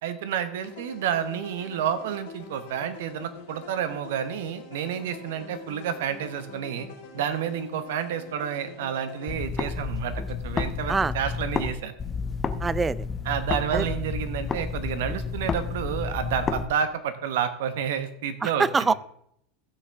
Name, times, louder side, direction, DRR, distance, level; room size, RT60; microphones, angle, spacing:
voice 1, 0.0-6.9 7.1-11.9 13.2-18.9, right 8 dB, 70° right, 11 dB, 1.1 m, -30 dB
sound 1, 0.6-9.3, left 6 dB, 70° left, 2.5 m, -45 dB
sound 2, 9.3-11.7 12.0-16.6, left 5 dB, 25° left, 0.8 m, -31 dB
voice 2, 12.6-13.0 13.7-13.8 18.4-18.9, right 4 dB, 20° right, 20 dB, 0.4 m, -24 dB
15.5 x 6.4 x 3.5 m, 0.72 s
hypercardioid pair, 90°, 0 cm